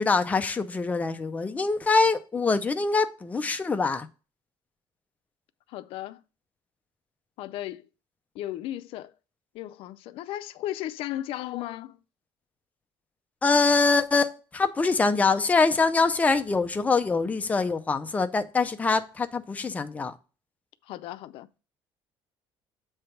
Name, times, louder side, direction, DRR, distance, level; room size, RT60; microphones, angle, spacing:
voice 1, 0.0-4.1 13.4-20.1, left 4 dB, 15° left, 0.5 m, -24 dB
voice 2, 5.7-6.2 7.4-7.9 8.3-9.1 9.5-12.0 20.8-21.6, left 13 dB, 70° left, 0.5 m, -35 dB
7.7 x 3.3 x 5.7 m
cardioid pair, 160°, 10 cm